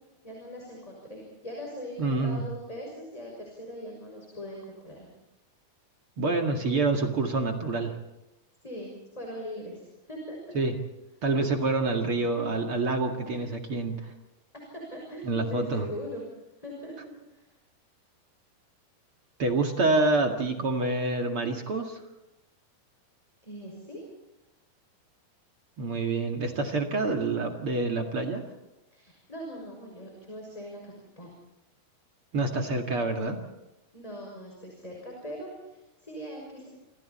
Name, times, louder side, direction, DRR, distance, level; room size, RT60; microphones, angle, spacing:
voice 1, 0.2-5.1 8.6-10.6 14.7-16.2 16.6-16.9 17.3-17.4 23.4-24.0 28.9-31.3 33.9-36.7, equal, 10° left, -1 dB, 5.9 m, -41 dB
voice 2, 2.0-2.4 6.2-7.9 10.5-10.7 11.2-14.1 15.3-15.8 19.4-22.0 25.8-28.4 32.3-33.4, right 3 dB, 40° right, 3 dB, 2.3 m, -27 dB
28.5 x 27.0 x 4.3 m, 0.94 s
omnidirectional pair, 4.5 m